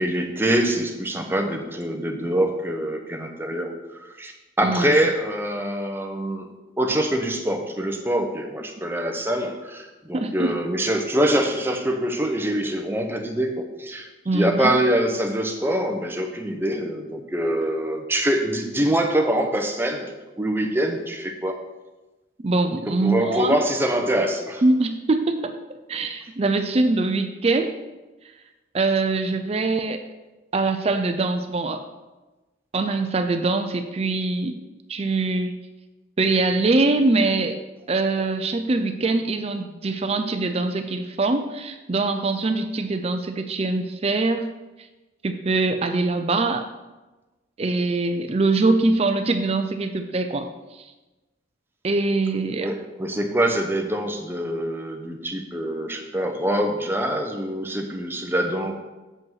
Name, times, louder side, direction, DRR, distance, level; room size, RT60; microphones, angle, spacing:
voice 1, 0.0-6.5 6.8-20.1 20.4-21.6 22.9-24.6 52.6-58.7, right 1 dB, 10° right, 3 dB, 0.8 m, -24 dB
voice 2, 4.6-5.0 10.1-10.6 14.3-14.7 22.4-23.6 24.6-25.5 25.9-27.7 28.7-30.0 30.5-31.8 32.7-34.6 34.9-35.5 36.2-37.6 37.9-44.5 45.2-46.7 47.6-50.5 51.8-52.7, right 3 dB, 30° right, 7 dB, 0.4 m, -23 dB
7.7 x 5.2 x 5.6 m, 1.1 s
head